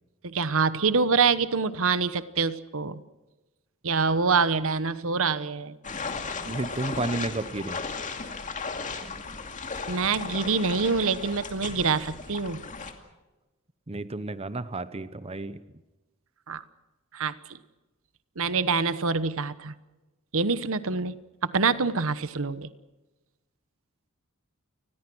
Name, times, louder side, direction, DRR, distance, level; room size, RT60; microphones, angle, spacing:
voice 1, 0.2-3.0 3.8-5.8 9.9-12.6 16.5-16.6 17.1-17.4 18.4-19.7 20.3-21.1 21.4-22.7, right 5 dB, 65° right, 14 dB, 1.1 m, -25 dB
sound 1, 5.8-12.9, left 4 dB, 35° left, 2.5 m, -36 dB
voice 2, 6.5-7.8 13.9-15.6, right 2 dB, 30° right, 13 dB, 0.9 m, -32 dB
29.5 x 20.5 x 6.2 m, 1.1 s
head